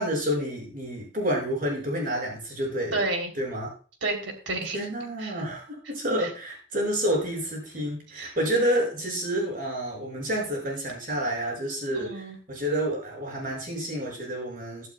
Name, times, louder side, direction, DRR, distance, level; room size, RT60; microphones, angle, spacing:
voice 1, 0.0-3.0 3.4-3.7 4.7-14.9, equal, 40° right, -1 dB, 6.0 m, -29 dB
voice 2, 2.9-3.3 4.0-4.8 5.2-5.4 6.2-6.3 8.1-8.4 11.9-12.4, right 2 dB, 65° right, 4 dB, 3.1 m, -30 dB
16.0 x 12.0 x 2.2 m, 0.39 s
head